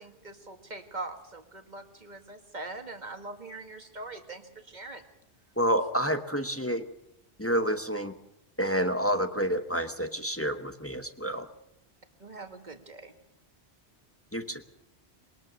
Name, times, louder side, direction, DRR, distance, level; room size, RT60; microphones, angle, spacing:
voice 1, 0.0-5.0 12.2-13.1, right 2 dB, 40° right, 6 dB, 2.0 m, -42 dB
voice 2, 5.6-6.8 7.4-8.1 8.6-11.5 14.3-14.6, equal, 15° left, 8 dB, 1.0 m, -29 dB
22.0 x 19.5 x 6.3 m, 0.80 s
omnidirectional pair, 1.1 m